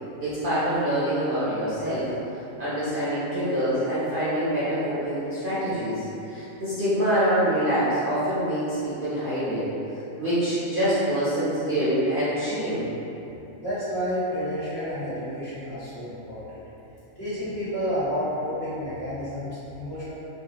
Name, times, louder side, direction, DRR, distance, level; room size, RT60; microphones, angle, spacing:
voice 1, 0.2-2.1 2.6-9.7 10.2-12.9, equal, 50° right, -12 dB, 0.7 m, -25 dB
voice 2, 13.6-16.6 17.1-20.1, equal, 45° left, -14 dB, 1.6 m, -30 dB
3.2 x 2.3 x 2.8 m, 2.9 s
omnidirectional pair, 1.5 m